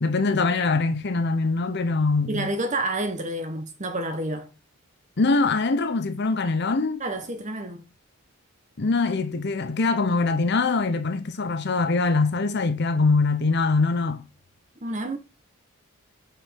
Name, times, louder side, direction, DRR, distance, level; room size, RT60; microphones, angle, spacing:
voice 1, 0.0-2.5 5.2-7.0 8.8-14.2, left 3 dB, 50° left, 0.7 m, -23 dB
voice 2, 2.3-4.5 7.0-7.9 14.8-15.2, right 1 dB, 35° right, 1.2 m, -29 dB
5.0 x 4.7 x 5.9 m
head